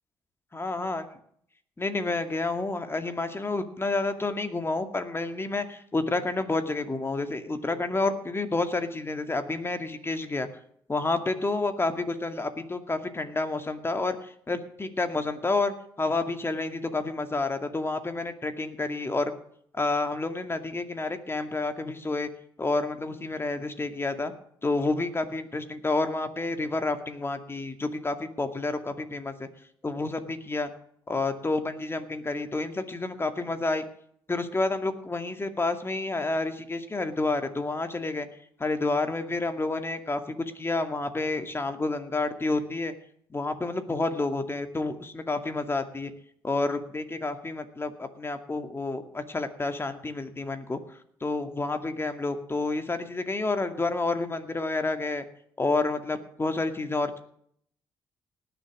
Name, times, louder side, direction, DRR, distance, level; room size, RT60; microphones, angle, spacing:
voice 1, 0.5-1.0 1.8-10.5 10.9-19.3 19.7-22.3 22.6-24.3 24.6-29.5 29.8-30.7 31.1-33.8 34.3-38.3 38.6-42.9 43.3-46.1 46.4-50.8 51.2-55.3 55.6-57.2, left 3 dB, 25° left, 8 dB, 2.2 m, -29 dB
19.0 x 7.0 x 6.2 m, 0.65 s
supercardioid pair, 65°, 9 cm